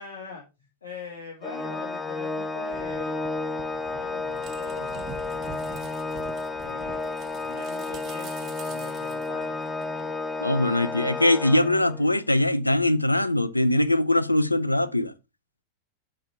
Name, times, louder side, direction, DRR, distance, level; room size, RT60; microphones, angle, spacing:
voice 1, 0.0-3.2 3.9-5.1 6.6-9.6, left 5 dB, 65° left, 1.4 m, -42 dB
Organ, 1.4-12.2, left 3 dB, 15° left, 0.4 m, -32 dB
sound 1, 2.7-10.1, right 7 dB, 30° right, 0.8 m, -45 dB
voice 2, 10.4-15.1, left 1 dB, 85° left, 0.4 m, -22 dB
5.7 x 4.8 x 4.1 m
figure-of-eight pair, 90°, 0 cm